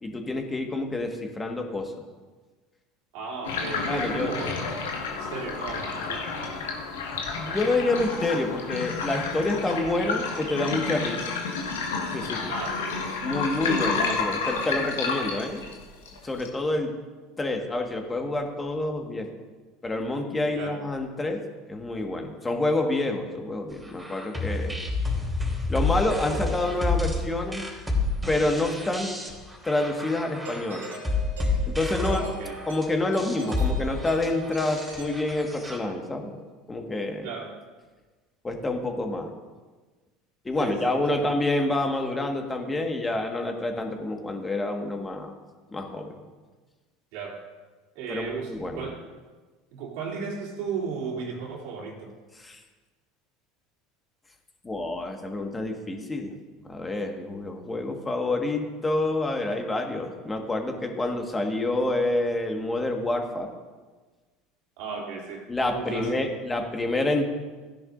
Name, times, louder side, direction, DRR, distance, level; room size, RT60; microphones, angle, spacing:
voice 1, 0.0-1.9 3.8-4.3 7.4-11.3 12.1-12.5 13.2-15.6 16.2-16.9 17.4-19.3 19.8-21.4 21.7-24.8 25.7-27.6 28.3-29.1 29.6-30.8 31.7-32.2 32.7-36.3 36.7-37.3 38.4-39.3 40.4-45.3 45.7-46.2 48.1-48.9 52.4-52.6 54.6-56.3 56.7-63.5 65.5-67.2, left 2 dB, 20° left, 3 dB, 1.6 m, -28 dB
voice 2, 3.1-4.6 5.1-6.3 12.5-13.1 20.5-20.8 32.1-32.6 37.2-37.5 40.6-41.3 47.1-47.4 47.9-49.0 49.7-52.1 64.8-65.5 65.7-66.2, right 5 dB, 65° right, -2 dB, 2.9 m, -35 dB
sound 1, 3.4-16.5, left 4 dB, 80° left, 1.4 m, -30 dB
sound 2, 23.8-35.8, left 3 dB, 10° right, 3.1 m, -29 dB
Doorbell, 30.4-35.9, right 2 dB, 85° right, 3.4 m, -42 dB
16.0 x 10.5 x 2.6 m, 1.3 s
hypercardioid pair, 75°, 0 cm